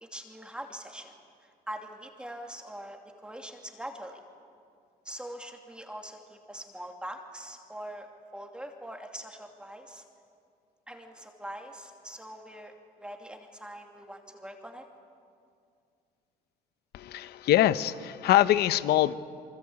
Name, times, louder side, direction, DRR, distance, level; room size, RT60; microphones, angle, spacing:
voice 1, 0.0-1.1 1.4-4.2 5.0-10.0 10.9-14.8, right 1 dB, 5° right, 3 dB, 2.7 m, -43 dB
voice 2, 16.9-19.1, left 13 dB, 70° left, 14 dB, 0.9 m, -23 dB
27.0 x 24.0 x 8.7 m, 2.3 s
cardioid pair, 110°, 17 cm